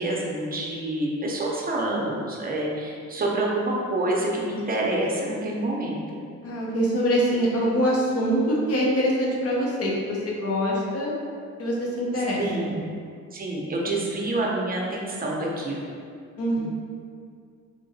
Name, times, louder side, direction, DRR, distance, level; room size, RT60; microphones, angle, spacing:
voice 1, 0.0-6.2 12.4-12.8 13.3-15.8 16.6-16.7, right 1 dB, 30° right, -2 dB, 0.7 m, -27 dB
voice 2, 6.4-11.1 11.6-12.8 16.4-16.7, equal, 50° left, -4 dB, 0.9 m, -24 dB
3.7 x 2.7 x 2.7 m, 2.2 s
cardioid pair, 90°, 30 cm